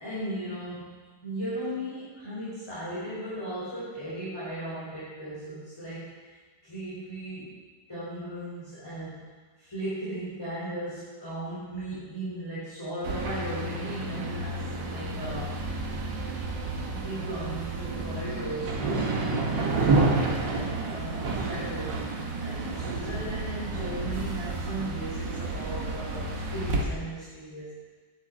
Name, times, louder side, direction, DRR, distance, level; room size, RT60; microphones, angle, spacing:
voice 1, 0.0-7.6 7.9-9.3 9.6-15.6 16.9-27.8, right 1 dB, 15° left, -11 dB, 4.3 m, -37 dB
sound 1, 13.0-26.8, right 3 dB, 85° right, 2.1 m, -30 dB
10.5 x 9.3 x 6.3 m, 1.4 s
omnidirectional pair, 1.9 m